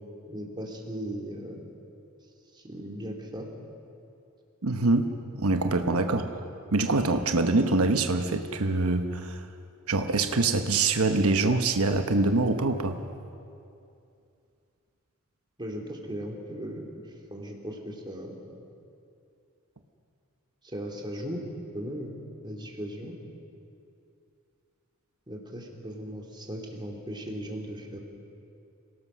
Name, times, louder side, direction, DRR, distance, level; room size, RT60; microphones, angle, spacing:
voice 1, 0.3-1.6 2.5-3.5 6.1-6.3 15.6-17.0 17.3-18.4 20.6-21.4 21.7-22.1 22.4-23.1 25.3-28.0, equal, 20° right, 1 dB, 2.8 m, -37 dB
voice 2, 4.6-6.2 6.7-9.4 9.9-13.0, right 3 dB, 90° right, 7 dB, 1.1 m, -24 dB
27.0 x 18.5 x 6.3 m, 2.6 s
head